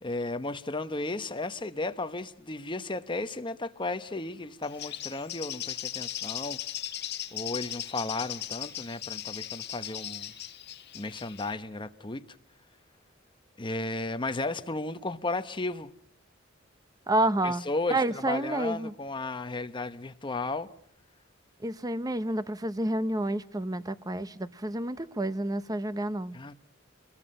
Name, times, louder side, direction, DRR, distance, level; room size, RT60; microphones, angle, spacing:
voice 1, 0.0-6.6 7.3-10.3 10.9-12.2 13.6-15.9 17.4-20.7 26.3-26.5, left 2 dB, 25° left, 1.1 m, -34 dB
Bird, 4.6-11.5, left 12 dB, 55° left, 1.7 m, -38 dB
voice 2, 17.1-17.6 17.9-18.9 21.6-26.4, right 1 dB, 20° right, 0.9 m, -29 dB
29.5 x 22.0 x 5.6 m
head